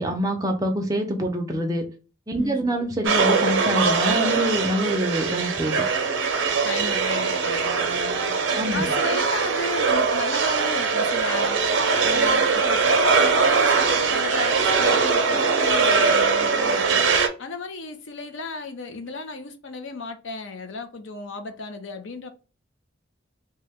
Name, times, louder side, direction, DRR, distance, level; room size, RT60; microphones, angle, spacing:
voice 1, 0.0-1.8 2.3-5.8 8.5-8.9, equal, 20° right, 0.6 m, -25 dB
sound 1, 3.0-17.3, right 4 dB, 85° right, 0.6 m, -21 dB
voice 2, 6.6-8.2 8.7-11.6 12.0-17.1 17.4-22.3, left 3 dB, 75° left, 0.6 m, -34 dB
3.0 x 2.2 x 3.4 m
head